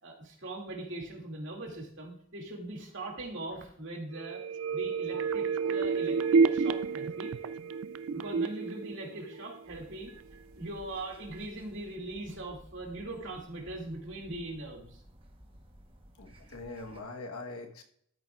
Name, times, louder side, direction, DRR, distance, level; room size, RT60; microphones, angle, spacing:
voice 1, 0.0-4.4 4.7-7.3 8.1-10.1 10.6-15.0, right 1 dB, 60° right, 0 dB, 2.4 m, -41 dB
sound 1, 4.1-9.8 10.2-10.3, right 5 dB, 75° right, 0.4 m, -30 dB
sound 2, 9.7-17.0, equal, 25° right, 1.1 m, -55 dB
voice 2, 16.2-17.8, left 2 dB, 85° left, 3 dB, 1.3 m, -42 dB
13.0 x 7.9 x 2.4 m, 0.66 s
head